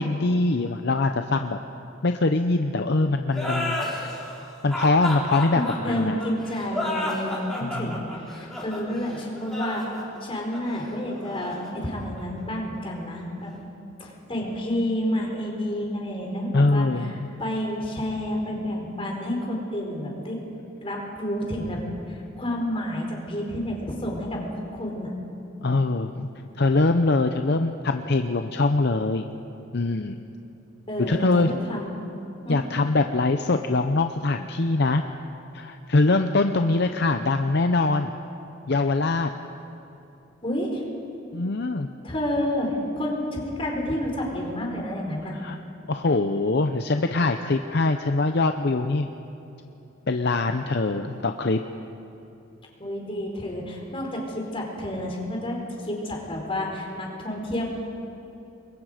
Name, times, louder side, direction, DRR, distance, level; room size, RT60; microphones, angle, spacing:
voice 1, 0.0-1.6 2.0-3.8 4.6-6.2 7.6-7.9 16.5-17.1 25.6-26.3 26.6-29.3 29.7-30.2 31.1-31.6 32.5-35.0 35.5-38.1 38.7-39.3 41.3-41.9 45.3-45.6 45.9-49.1 50.1-51.6, left 2 dB, 60° left, 6 dB, 0.7 m, -23 dB
sound 1, 3.3-12.6, left 1 dB, ahead, 4.4 m, -32 dB
voice 2, 5.5-9.9 10.2-13.5 14.0-20.4 20.8-21.8 22.1-24.4 24.7-25.1 30.9-32.0 32.4-32.6 40.4-40.8 42.0-45.4 52.8-57.6, left 1 dB, 30° left, -1 dB, 4.3 m, -30 dB
29.0 x 22.0 x 5.1 m, 3.0 s
head